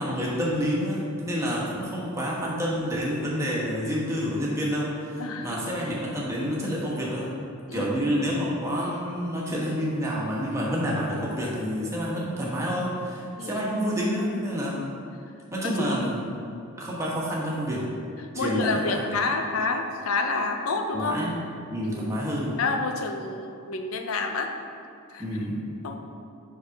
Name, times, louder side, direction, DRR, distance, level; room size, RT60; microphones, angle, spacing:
voice 1, 0.0-7.3 7.7-14.9 15.5-16.4 16.8-17.8 18.3-19.0 20.9-21.3 21.7-22.6 25.2-25.7, equal, 15° right, -5 dB, 1.2 m, -28 dB
voice 2, 5.2-5.6 7.7-7.9 13.4-13.6 15.6-16.0 18.3-21.2 21.8-22.1 22.6-24.5 25.1-25.2 25.8-26.0, left 3 dB, 85° left, 5 dB, 0.6 m, -29 dB
5.1 x 4.1 x 5.2 m, 2.5 s
head